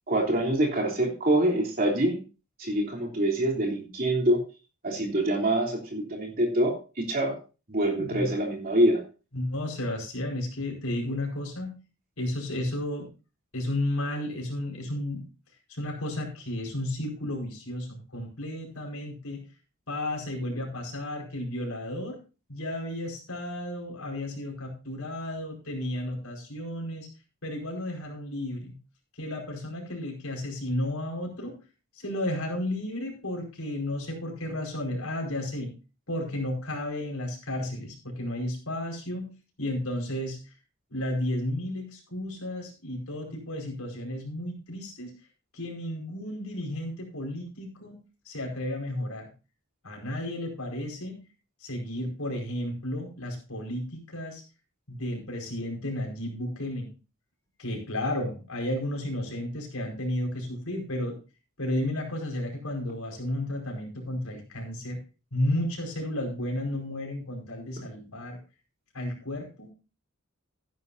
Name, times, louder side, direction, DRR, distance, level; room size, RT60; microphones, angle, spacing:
voice 1, 0.1-2.2 2.6-4.5 4.8-7.4 7.7-9.0, right 1 dB, 40° right, 0 dB, 3.2 m, -25 dB
voice 2, 8.0-8.3 9.3-11.8 12.2-13.1 13.5-15.3 15.7-19.4 19.9-22.2 22.5-27.1 27.4-28.7 29.1-31.6 31.9-35.7 36.1-39.3 39.6-40.5 40.9-45.1 45.5-48.0 48.2-49.3 49.8-51.2 51.6-54.4 54.9-56.9 57.6-61.2 61.6-65.0 65.3-68.4 68.9-69.7, left 1 dB, 85° left, 1 dB, 4.9 m, -33 dB
14.0 x 11.0 x 2.6 m, 0.32 s
head